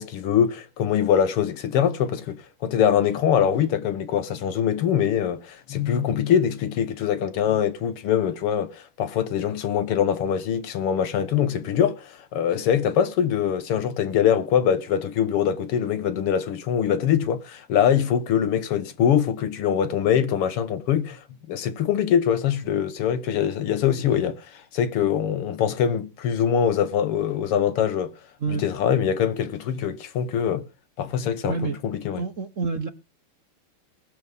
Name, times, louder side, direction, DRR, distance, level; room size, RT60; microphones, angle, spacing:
voice 1, 0.0-28.2 28.5-30.7 31.0-32.2, left 8 dB, 85° left, 2.2 m, -23 dB
voice 2, 31.4-31.8 32.2-32.9, right 5 dB, 50° right, 1.0 m, -28 dB
19.5 x 7.4 x 5.3 m
omnidirectional pair, 2.4 m